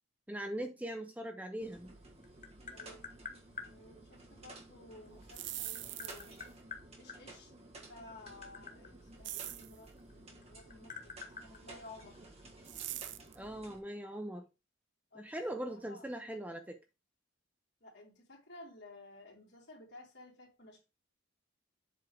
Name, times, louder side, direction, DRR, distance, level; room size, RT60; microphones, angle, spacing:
voice 1, 0.3-1.9 13.4-14.4 15.1-16.8, right 1 dB, 5° right, 0.6 m, -40 dB
sound 1, 1.6-13.8, right 2 dB, 30° right, 1.4 m, -54 dB
Tap, 1.9-3.7 5.1-7.2 8.0-10.1 10.4-12.4, left 6 dB, 35° left, 1.0 m, -48 dB
voice 2, 2.7-3.0 3.6-6.4 7.0-12.2 15.1-15.2 15.7-16.0 17.8-20.9, left 2 dB, 55° left, 3.2 m, -55 dB
sound 2, 5.2-6.4 9.2-9.8 12.7-13.4, right 15 dB, 60° right, 0.5 m, -42 dB
7.7 x 3.7 x 4.9 m
head